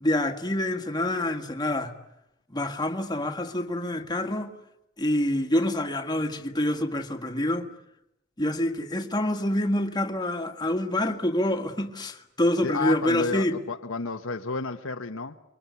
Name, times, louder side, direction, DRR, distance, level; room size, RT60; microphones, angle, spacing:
voice 1, 0.0-1.9 2.5-4.5 5.0-7.7 8.4-13.6, left 1 dB, 20° left, 1.8 m, -26 dB
voice 2, 12.6-15.4, left 3 dB, 65° left, 1.2 m, -31 dB
29.5 x 23.0 x 8.3 m
head